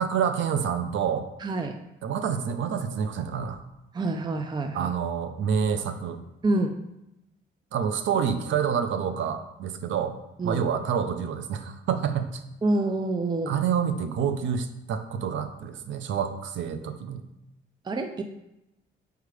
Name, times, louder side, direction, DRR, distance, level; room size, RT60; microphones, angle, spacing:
voice 1, 0.0-1.3 2.0-3.6 4.7-6.2 7.7-10.1 10.4-12.4 13.5-17.2, right 7 dB, 75° right, 9 dB, 0.6 m, -28 dB
voice 2, 1.4-1.8 3.9-4.9 6.4-6.7 10.4-10.6 12.6-13.5 17.8-18.2, right 2 dB, 20° right, 6 dB, 0.5 m, -27 dB
6.5 x 4.7 x 3.3 m, 0.90 s
cardioid pair, 90°, 20 cm